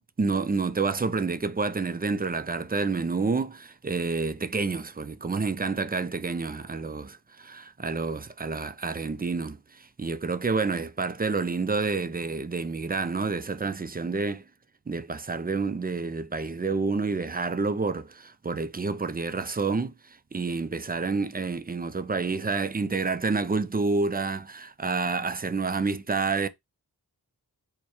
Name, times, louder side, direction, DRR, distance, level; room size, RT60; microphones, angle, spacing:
voice 1, 0.2-14.4 14.9-26.5, right 4 dB, 25° right, 0.4 m, -29 dB
4.3 x 2.2 x 4.6 m
wide cardioid pair, 55°, 39 cm